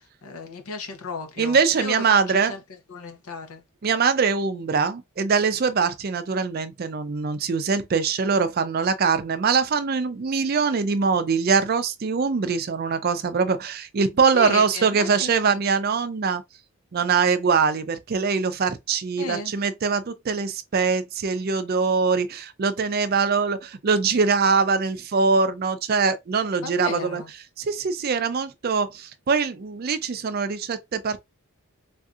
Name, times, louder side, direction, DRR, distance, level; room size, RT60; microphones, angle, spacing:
voice 1, 0.2-2.6 2.9-3.6 14.3-15.6 19.2-19.5 26.6-27.3, left 4 dB, 75° left, 0.8 m, -34 dB
voice 2, 1.4-2.5 3.8-16.4 16.9-27.2 27.6-31.2, right 5 dB, 45° right, 0.4 m, -23 dB
3.4 x 2.7 x 2.4 m
head